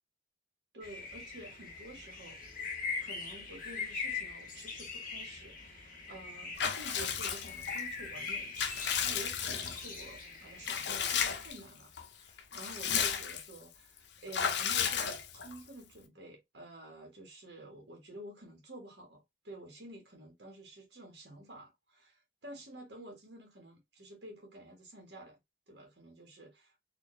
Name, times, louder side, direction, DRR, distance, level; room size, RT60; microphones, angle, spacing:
voice 1, 0.7-2.4 3.0-25.4 25.7-26.8, right 1 dB, 65° right, 1.5 m, -50 dB
Spring singing of Dutch birds, 0.8-11.5, left 5 dB, 45° left, 1.4 m, -42 dB
Water / Bathtub (filling or washing) / Liquid, 6.6-7.8 8.3-10.0 10.6-11.6 12.0-12.1 12.4-13.6 14.3-15.6, left 7 dB, 65° left, 0.7 m, -33 dB
4.3 x 2.7 x 3.2 m
head